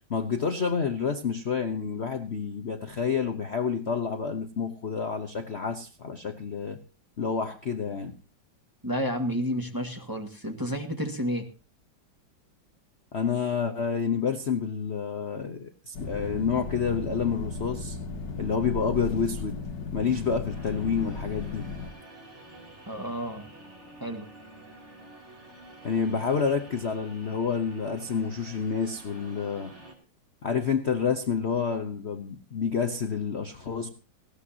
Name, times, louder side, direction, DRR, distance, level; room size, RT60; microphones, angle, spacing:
voice 1, 0.1-6.8 7.2-8.2 13.1-18.0 18.4-19.6 19.9-21.7 25.8-29.7 30.4-33.9, left 6 dB, 45° left, 6 dB, 1.0 m, -29 dB
voice 2, 8.8-11.5 22.9-23.5 24.0-24.3, equal, 10° right, 4 dB, 1.5 m, -31 dB
sound 1, 15.9-21.9, left 3 dB, 65° left, 2.1 m, -36 dB
sound 2, 20.5-29.9, right 1 dB, 35° right, 3.4 m, -49 dB
18.5 x 16.5 x 2.9 m, 0.32 s
omnidirectional pair, 2.1 m